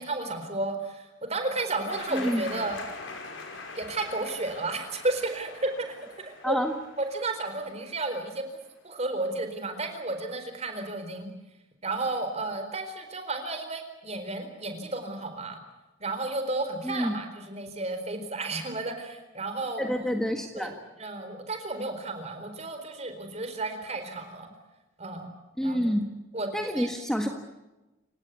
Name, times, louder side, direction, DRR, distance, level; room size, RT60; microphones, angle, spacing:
voice 1, 0.0-2.8 3.7-6.7 7.0-8.4 8.8-11.3 11.8-15.6 16.0-20.1 20.6-20.7 21.0-24.5 25.0-25.3 25.6-25.9 26.3-26.9, right 2 dB, 35° right, 7 dB, 4.3 m, -32 dB
sound 1, 1.9-8.5, left 3 dB, 75° left, 5.5 m, -43 dB
voice 2, 2.1-2.4 6.4-6.7 16.8-17.1 19.8-20.8 25.6-26.0 26.5-27.3, equal, 5° left, 4 dB, 1.6 m, -28 dB
28.5 x 17.5 x 8.4 m, 1.0 s
head